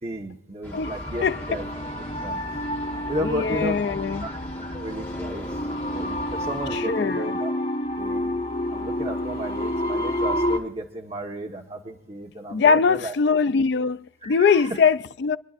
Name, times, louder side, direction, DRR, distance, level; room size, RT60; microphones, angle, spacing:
voice 1, 0.0-1.7 2.2-2.4 3.1-3.8 4.2-5.4 5.8-7.5 8.0-8.3 8.7-13.1 14.2-14.7, right 1 dB, 35° right, 1.1 m, -33 dB
sound 1, 0.6-6.8, equal, 10° left, 1.0 m, -39 dB
voice 2, 0.7-1.4 3.2-4.3 6.7-7.4 12.5-15.4, left 5 dB, 65° left, 0.4 m, -22 dB
sound 2, 0.7-10.6, left 1 dB, 35° left, 2.7 m, -29 dB
27.0 x 11.0 x 2.5 m
head